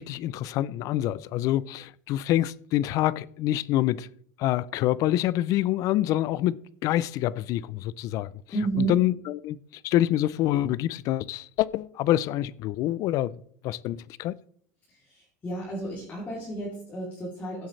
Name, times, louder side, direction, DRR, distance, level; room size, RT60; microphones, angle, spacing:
voice 1, 0.0-4.1 4.4-8.3 8.8-13.3 13.6-14.3, left 14 dB, 45° left, 0.4 m, -26 dB
voice 2, 8.5-9.0 14.9-17.7, right 3 dB, 20° left, 3.0 m, -32 dB
16.0 x 8.0 x 3.2 m
supercardioid pair, 150°, 8 cm